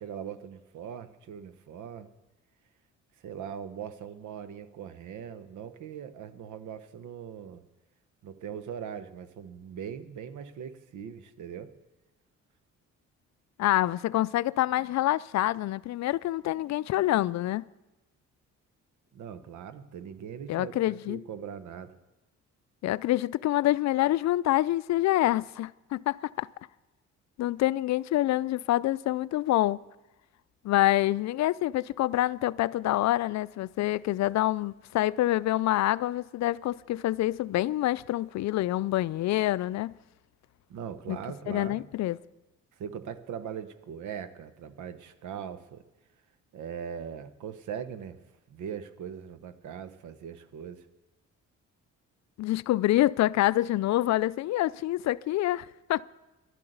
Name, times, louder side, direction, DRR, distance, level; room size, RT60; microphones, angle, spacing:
voice 1, 0.0-2.1 3.2-7.6 8.2-11.7 19.1-21.9 40.7-41.8 42.8-45.8 46.5-48.2 48.5-50.9, right 8 dB, 75° right, 1.0 m, -40 dB
voice 2, 13.6-17.7 20.5-21.2 22.8-26.5 27.4-29.8 30.6-39.9 41.1-41.2 41.5-42.2 52.4-56.0, left 15 dB, 65° left, 0.4 m, -26 dB
12.0 x 11.0 x 8.0 m
cardioid pair, 90°, 30 cm